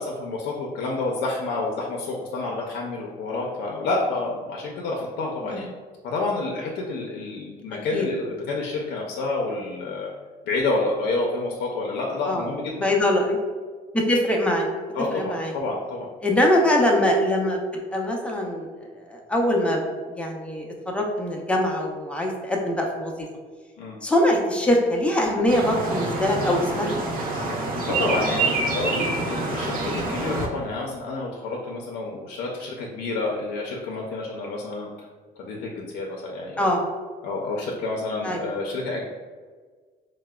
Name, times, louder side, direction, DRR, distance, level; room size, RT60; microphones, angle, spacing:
voice 1, 0.0-5.7 6.0-10.1 10.5-12.9 14.9-16.1 23.8-24.0 27.9-35.1 35.4-36.7 37.2-39.0, left 3 dB, 80° left, -1 dB, 0.5 m, -29 dB
voice 2, 12.8-13.4 13.9-14.7 15.1-15.5 16.2-17.6 17.9-18.7 19.0-19.9 20.1-23.3 24.0-27.0 36.6-36.8 38.2-38.4, left 1 dB, 5° left, -1 dB, 0.5 m, -23 dB
sound 1, 25.5-30.5, right 2 dB, 55° right, 0.6 m, -27 dB
4.6 x 2.0 x 2.2 m, 1.5 s
cardioid pair, 110°, 17 cm